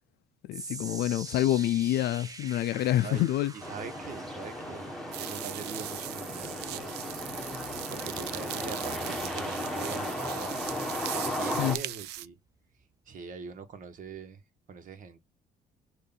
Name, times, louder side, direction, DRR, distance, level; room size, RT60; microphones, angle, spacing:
voice 1, 0.5-3.5 11.6-11.8, left 13 dB, 70° left, 0.5 m, -27 dB
sound 1, 0.5-12.8 13.1-13.5 14.1-14.2, right 3 dB, 20° right, 0.8 m, -48 dB
voice 2, 3.5-4.9 5.2-6.9 7.9-10.6 11.1-12.4 13.1-14.4 14.7-15.2, right 6 dB, 50° right, 1.4 m, -42 dB
sound 2, 3.6-11.8, left 1 dB, ahead, 1.4 m, -35 dB
sound 3, 5.1-12.3, right 14 dB, 80° right, 0.5 m, -39 dB
6.5 x 2.7 x 5.6 m
cardioid pair, 110°, 17 cm